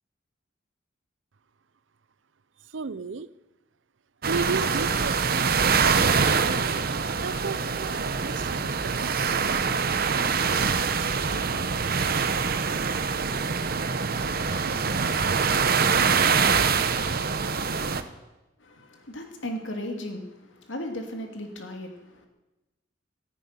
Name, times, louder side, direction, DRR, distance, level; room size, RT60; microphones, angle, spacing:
voice 1, 2.7-3.3 4.3-6.8 7.2-9.2, right 4 dB, 80° right, 17 dB, 0.6 m, -34 dB
sound 1, 4.2-18.0, right 5 dB, 50° right, 0.9 m, -24 dB
voice 2, 18.6-22.3, left 1 dB, 80° left, 4 dB, 2.7 m, -36 dB
14.0 x 10.0 x 9.7 m, 1.0 s
head